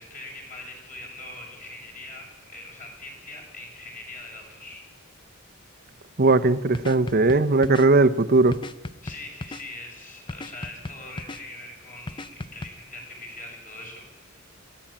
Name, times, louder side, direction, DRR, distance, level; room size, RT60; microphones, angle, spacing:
voice 1, 0.0-4.8 9.0-14.4, left 2 dB, 40° left, 0 dB, 6.8 m, -42 dB
voice 2, 6.2-8.6, right 3 dB, 45° right, 11 dB, 0.9 m, -19 dB
sound 1, 6.7-7.9 8.5-9.6 10.3-11.4 12.1-12.7, left 2 dB, 25° left, 0.6 m, -36 dB
21.5 x 14.5 x 8.7 m, 1.1 s
head